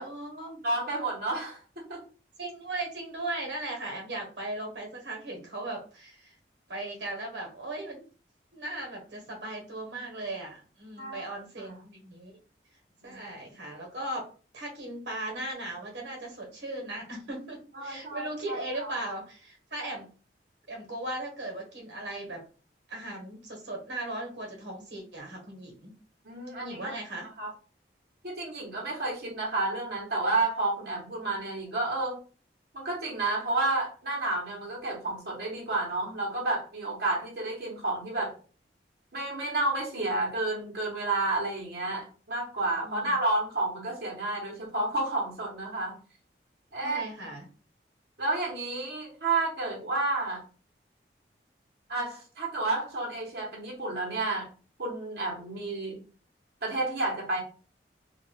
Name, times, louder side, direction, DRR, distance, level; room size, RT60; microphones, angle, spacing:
voice 1, 0.0-0.6 2.4-6.4 6.7-8.0 8.5-12.4 13.0-14.3 14.5-20.1 20.7-22.4 22.9-25.9 26.6-27.3 42.8-43.1 46.8-47.4, right 1 dB, 85° right, 0 dB, 1.1 m, -37 dB
voice 2, 0.6-2.0 11.0-11.2 11.6-11.8 13.1-13.2 17.7-19.0 26.2-27.0 27.4-27.5 28.2-32.2 32.7-38.3 39.1-46.0 46.7-47.1 48.2-50.4 51.9-54.5 54.8-56.0 56.6-57.4, right 2 dB, 60° right, -3 dB, 0.9 m, -31 dB
2.4 x 2.2 x 3.3 m, 0.37 s
head